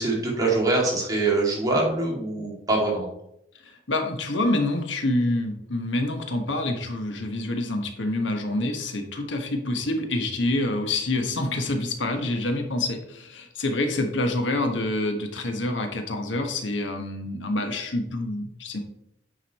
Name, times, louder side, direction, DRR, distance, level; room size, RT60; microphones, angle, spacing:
voice 1, 0.0-3.1, right 2 dB, 20° right, -3 dB, 2.3 m, -24 dB
voice 2, 3.6-18.8, left 2 dB, 90° left, 5 dB, 1.2 m, -27 dB
9.3 x 5.2 x 4.2 m, 0.80 s
head